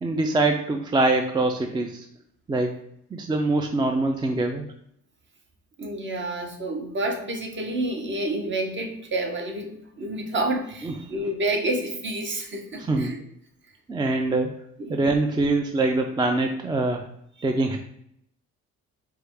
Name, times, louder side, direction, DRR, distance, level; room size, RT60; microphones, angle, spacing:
voice 1, 0.0-2.1 2.5-2.7 3.1-4.7 10.8-10.9 12.8-13.1 13.9-14.6 14.9-17.0 17.4-17.8, right 2 dB, 15° right, 4 dB, 0.3 m, -24 dB
voice 2, 5.8-13.2 14.8-15.0, right 1 dB, 40° right, 3 dB, 0.8 m, -29 dB
4.6 x 2.3 x 3.3 m, 0.72 s
cardioid pair, 90°, 30 cm